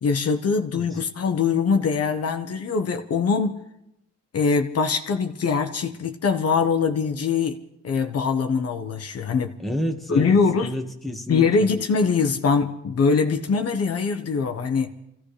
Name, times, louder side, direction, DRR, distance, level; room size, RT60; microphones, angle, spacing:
voice 1, 0.0-3.6 4.3-7.6 7.8-9.5 10.1-10.7 11.3-14.9, left 5 dB, 55° left, 5 dB, 1.3 m, -22 dB
voice 2, 9.6-11.8, equal, ahead, 1 dB, 1.7 m, -30 dB
26.5 x 16.0 x 3.4 m, 0.81 s
cardioid pair, 90°, 30 cm